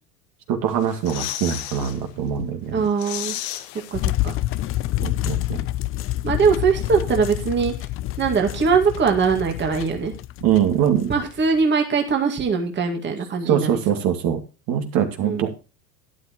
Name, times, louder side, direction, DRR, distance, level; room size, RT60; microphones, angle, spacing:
voice 1, 0.5-2.8 5.0-5.6 10.4-11.1 13.4-14.4 14.7-15.5, right 9 dB, 50° right, 5 dB, 2.3 m, -22 dB
sound 1, 0.7-2.0 2.4-2.5 2.8-4.5 4.8-4.9, left 13 dB, 60° left, 1.4 m, -33 dB
voice 2, 2.7-3.3 3.9-4.3 6.2-7.7 8.2-10.1 11.1-14.0 15.2-15.4, right 5 dB, 25° right, 3 dB, 2.1 m, -21 dB
sound 2, 3.9-11.6, left 15 dB, 30° left, 0.5 m, -28 dB
12.5 x 10.0 x 3.0 m, 0.31 s
hypercardioid pair, 95°, 44 cm